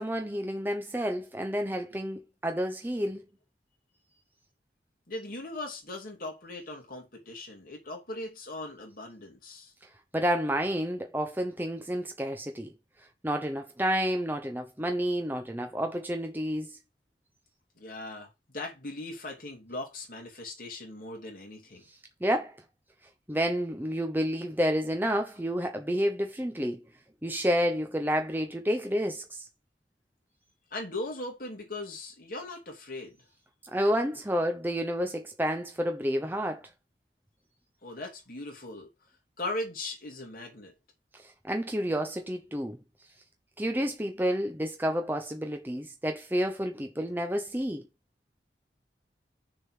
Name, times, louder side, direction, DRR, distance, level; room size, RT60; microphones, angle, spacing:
voice 1, 0.0-3.2 10.1-12.7 13.2-16.8 22.2-22.6 23.3-26.8 27.2-29.4 33.7-36.6 41.4-42.8 43.6-47.9, equal, 10° right, 0.9 m, -30 dB
voice 2, 5.1-9.7 17.8-21.9 30.7-33.2 37.8-38.9 39.4-40.7, left 2 dB, 50° left, 2.9 m, -39 dB
6.7 x 3.9 x 6.4 m
head